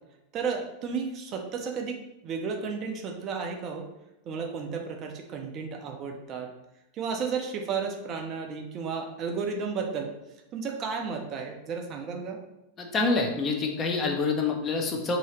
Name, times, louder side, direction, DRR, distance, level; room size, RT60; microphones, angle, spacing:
voice 1, 0.3-2.0 2.2-3.9 4.3-6.5 6.9-10.1 10.5-12.4, right 5 dB, 35° right, 3 dB, 0.4 m, -33 dB
voice 2, 12.8-15.2, left 4 dB, 25° left, 1 dB, 0.5 m, -27 dB
2.8 x 2.7 x 3.1 m, 0.95 s
figure-of-eight pair, 90°, 0 cm